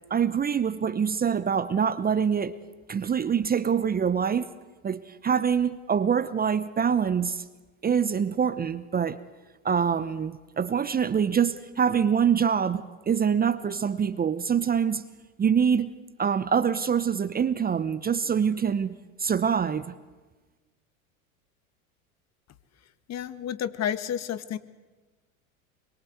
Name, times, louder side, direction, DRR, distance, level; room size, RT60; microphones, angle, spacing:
voice 1, 0.1-2.6 2.9-4.5 4.8-7.4 7.8-9.2 9.6-15.1 15.4-15.9 16.2-19.9, right 7 dB, 20° right, 1.0 m, -25 dB
voice 2, 23.1-24.6, left 9 dB, 40° left, 1.7 m, -30 dB
26.0 x 23.0 x 8.1 m
hypercardioid pair, 85°, 41 cm